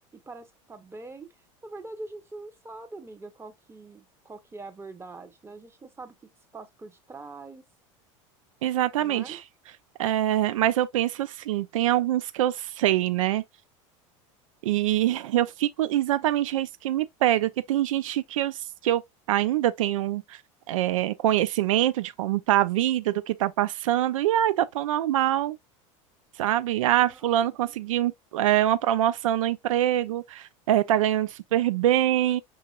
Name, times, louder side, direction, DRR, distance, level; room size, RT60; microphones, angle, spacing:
voice 1, 0.1-1.3 1.6-7.6 9.0-9.4 15.1-15.2 27.0-27.5, right 3 dB, 15° right, 1.0 m, -43 dB
voice 2, 8.6-9.4 10.0-13.4 14.6-19.0 19.3-20.4 20.7-25.6 26.4-32.4, right 13 dB, 85° right, 0.5 m, -24 dB
6.1 x 2.8 x 2.4 m
hypercardioid pair, 90°, 17 cm